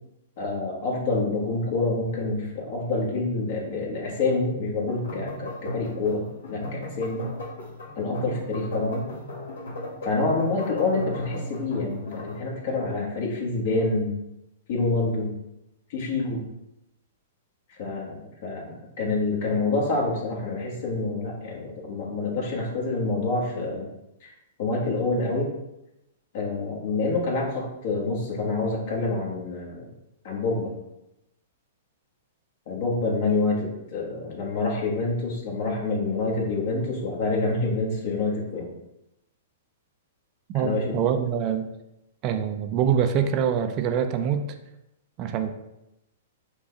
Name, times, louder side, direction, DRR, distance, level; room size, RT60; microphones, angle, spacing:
voice 1, 0.4-7.2 7.9-9.1 10.0-14.1 14.7-15.3 15.9-16.4 17.7-23.9 24.2-24.3 24.6-25.5 26.3-29.9 30.2-30.7 32.7-38.8 40.5-41.0, left 3 dB, 60° left, -2 dB, 1.4 m, -27 dB
sound 1, 4.9-12.5, left 1 dB, 80° left, 1.5 m, -36 dB
voice 2, 40.5-41.7 42.2-44.5 45.2-45.5, right 8 dB, 40° right, 8 dB, 0.4 m, -24 dB
5.0 x 2.3 x 3.8 m, 0.88 s
hypercardioid pair, 125°, 0 cm